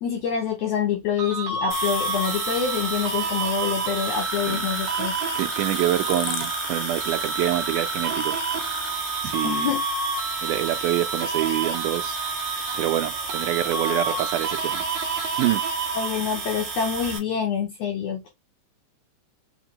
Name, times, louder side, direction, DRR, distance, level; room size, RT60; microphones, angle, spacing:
voice 1, 0.0-5.2 9.4-9.8 10.6-10.8 15.9-18.3, left 7 dB, 70° left, 1.6 m, -26 dB
sound 1, 1.2-16.4, right 3 dB, 70° right, 1.9 m, -30 dB
sound 2, 1.7-17.2, right 4 dB, 45° right, 1.8 m, -32 dB
sound 3, 4.1-8.9, left 11 dB, 85° left, 2.2 m, -37 dB
voice 2, 5.4-8.3 9.2-9.7 10.4-12.2 12.6-14.9 15.4-15.6, right 15 dB, 85° right, 2.1 m, -26 dB
5.2 x 2.2 x 2.9 m
omnidirectional pair, 3.6 m